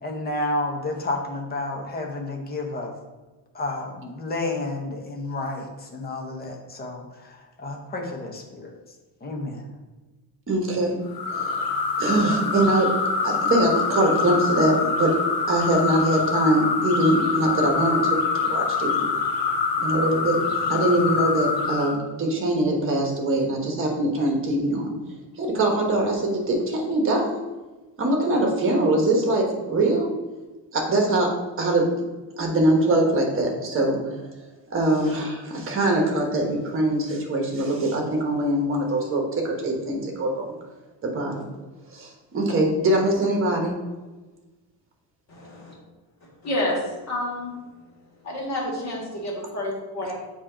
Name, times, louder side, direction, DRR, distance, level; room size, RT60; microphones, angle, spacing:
voice 1, 0.0-2.9 3.5-8.8 9.2-9.7, left 2 dB, 20° left, 1 dB, 0.8 m, -31 dB
voice 2, 10.5-11.6 12.0-12.9 13.2-15.2 15.5-19.1 19.8-24.9 25.4-27.4 28.0-30.1 30.7-31.9 32.4-34.2 34.7-40.5 41.0-41.4 41.9-43.7, right 1 dB, 30° right, 1 dB, 1.2 m, -23 dB
sound 1, 11.1-22.0, left 4 dB, 55° left, 0.9 m, -25 dB
voice 3, 45.3-45.7 46.4-47.6 48.2-50.1, left 1 dB, 40° left, -3 dB, 1.9 m, -29 dB
7.3 x 2.9 x 4.9 m, 1.2 s
cardioid pair, 175°, 43 cm